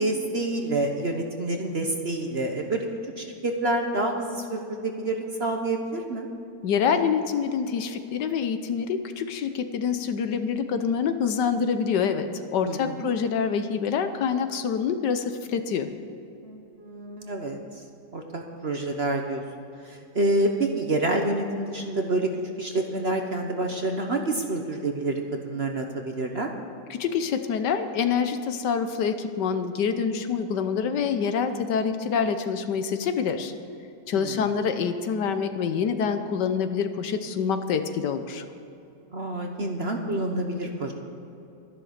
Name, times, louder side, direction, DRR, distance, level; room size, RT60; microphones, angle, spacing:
voice 1, 0.0-2.9 3.2-6.3 12.6-13.1 16.4-17.6 18.1-19.4 19.8-22.3 22.6-26.5 34.1-34.5 39.1-40.9, right 2 dB, 40° right, 3 dB, 1.1 m, -28 dB
voice 2, 6.6-15.9 26.9-33.5 34.1-38.4, left 6 dB, 70° left, 9 dB, 1.4 m, -26 dB
12.5 x 11.0 x 6.5 m, 2.8 s
omnidirectional pair, 2.0 m